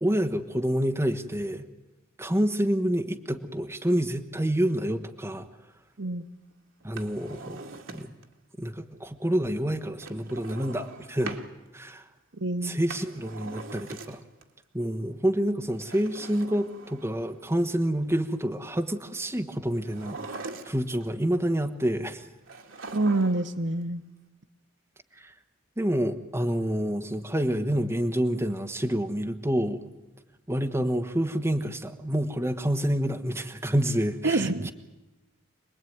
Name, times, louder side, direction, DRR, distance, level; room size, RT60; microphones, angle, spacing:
voice 1, 0.0-1.6 2.2-5.5 6.8-8.1 8.6-11.4 11.7-12.0 12.6-14.2 14.7-20.4 20.6-22.3 25.2-25.3 25.8-29.8 30.5-34.7, equal, 15° right, 6 dB, 1.3 m, -28 dB
Drawer open or close, 6.8-8.3 10.0-11.5 12.7-14.4 15.7-17.3 19.8-21.0 22.5-23.6 23.8-23.9, right 3 dB, 80° right, 2.2 m, -42 dB
voice 2, 12.4-12.8 22.9-24.0 34.2-34.7, right 2 dB, 60° right, 9 dB, 1.1 m, -26 dB
27.0 x 19.5 x 9.5 m, 1.0 s
head